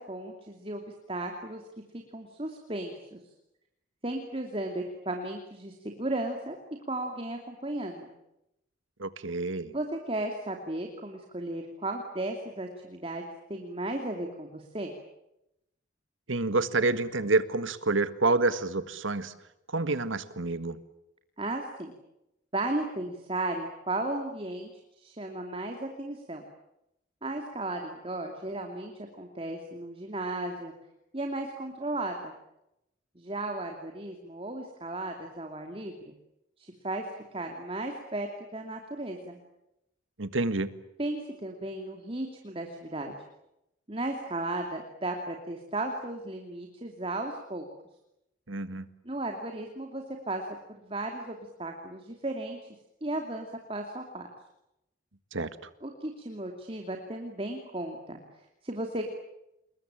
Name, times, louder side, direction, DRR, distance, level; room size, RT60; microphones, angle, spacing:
voice 1, 0.1-0.8 1.1-1.6 1.9-3.2 4.0-6.6 6.9-8.1 9.7-13.2 13.5-14.9 21.4-21.9 22.5-24.7 25.0-26.4 27.2-30.7 31.1-32.3 33.2-35.9 36.6-37.0 37.3-38.3 38.5-39.4 41.0-43.1 43.9-47.7 49.0-50.4 50.7-52.6 53.0-54.3 55.8-59.1, right 2 dB, 30° right, 3 dB, 2.6 m, -35 dB
voice 2, 9.0-9.7 16.3-19.3 19.7-20.8 40.2-40.7 48.5-48.9 55.3-55.5, right 3 dB, 85° right, 13 dB, 1.7 m, -28 dB
28.5 x 22.0 x 8.9 m, 0.87 s
head